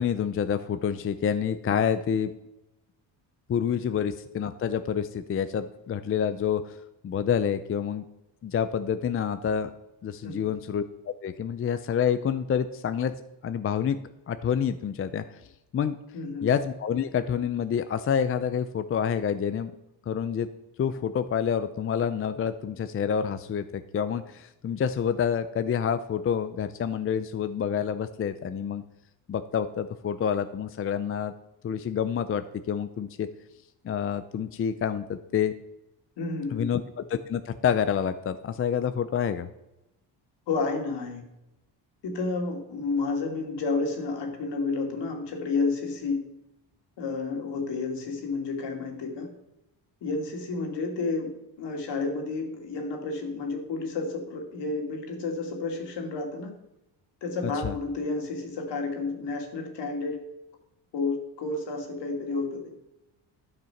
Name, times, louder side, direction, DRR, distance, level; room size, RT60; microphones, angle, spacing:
voice 1, 0.0-2.3 3.5-6.8 7.0-8.1 8.4-9.7 10.0-13.1 13.4-15.2 15.7-16.0 16.4-19.7 20.1-20.5 20.8-28.8 29.3-31.3 31.6-33.3 33.8-35.5 36.5-36.8 37.1-39.5 57.4-57.7, left 8 dB, 30° left, 11 dB, 0.4 m, -28 dB
voice 2, 16.1-16.5 36.2-36.7 40.5-41.2 42.0-46.2 47.0-49.3 50.0-51.3 51.6-56.5 57.2-60.2 60.9-62.6, left 3 dB, 65° left, 3 dB, 2.5 m, -30 dB
12.0 x 6.7 x 5.8 m, 0.90 s
cardioid pair, 135°, 44 cm